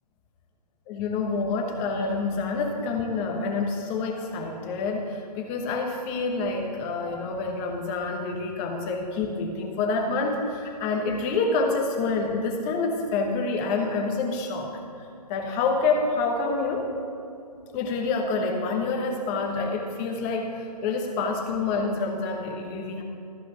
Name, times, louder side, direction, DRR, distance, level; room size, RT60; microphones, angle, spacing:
voice 1, 0.9-14.7 15.3-16.9 17.7-23.0, left 3 dB, 20° left, 2 dB, 1.0 m, -27 dB
14.0 x 5.1 x 6.9 m, 2.5 s
figure-of-eight pair, 140°, 21 cm